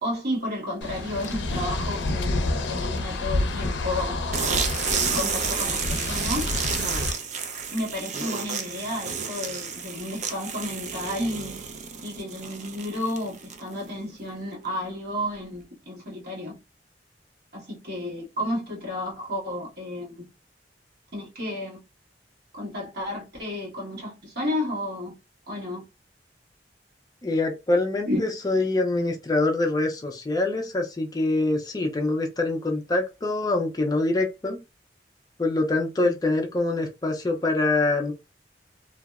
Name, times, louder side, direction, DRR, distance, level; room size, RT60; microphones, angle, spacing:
voice 1, 0.0-4.2 4.9-6.5 7.7-11.6 12.0-16.6 17.5-20.3 21.1-21.8 22.5-25.1 25.5-25.8 28.1-28.2, left 1 dB, 60° right, 1.3 m, -32 dB
sound 1, 0.8-7.1, left 2 dB, 90° left, 0.5 m, -29 dB
sound 2, 4.3-13.8, right 6 dB, 40° right, 0.4 m, -31 dB
voice 2, 27.2-34.6 35.4-38.1, left 2 dB, 20° left, 0.4 m, -25 dB
2.6 x 2.0 x 2.3 m
head